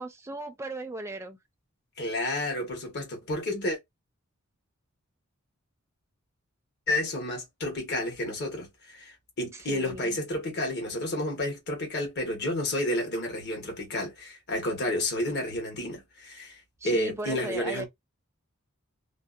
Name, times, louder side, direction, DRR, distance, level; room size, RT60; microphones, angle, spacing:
voice 1, 0.0-1.4 9.5-10.2 16.8-17.8, right 2 dB, 15° right, 0.4 m, -37 dB
voice 2, 2.0-3.8 6.9-16.6 16.8-17.9, left 1 dB, 50° left, 1.0 m, -31 dB
2.6 x 2.1 x 2.3 m
head